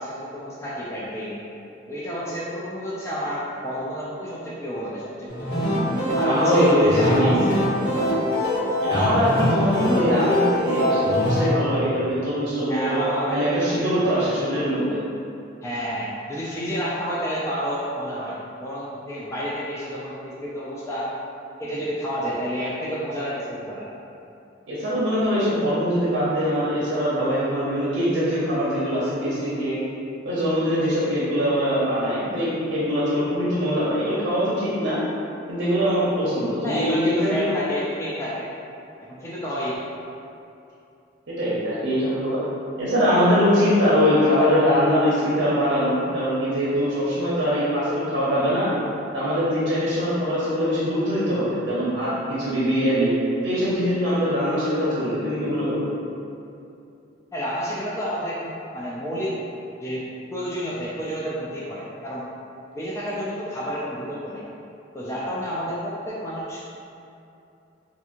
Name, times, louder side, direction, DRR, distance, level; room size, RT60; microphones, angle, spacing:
voice 1, 0.0-1.4 1.9-5.7 6.2-7.7 12.7-14.3 15.6-21.2 21.6-23.9 36.6-38.5 39.1-39.8 50.2-50.3 57.3-59.4 59.8-62.3 62.7-64.4 64.9-66.6, equal, 15° left, -7 dB, 0.3 m, -30 dB
sound 1, 5.3-11.4, equal, 65° left, 1.4 m, -23 dB
voice 2, 6.2-7.4 8.8-13.0 13.3-15.0 24.7-29.8 30.2-35.0 35.5-37.5 41.3-42.4 42.8-48.7 49.1-53.1 53.4-55.8, equal, 85° right, -9 dB, 0.6 m, -22 dB
2.8 x 2.6 x 2.4 m, 2.7 s
head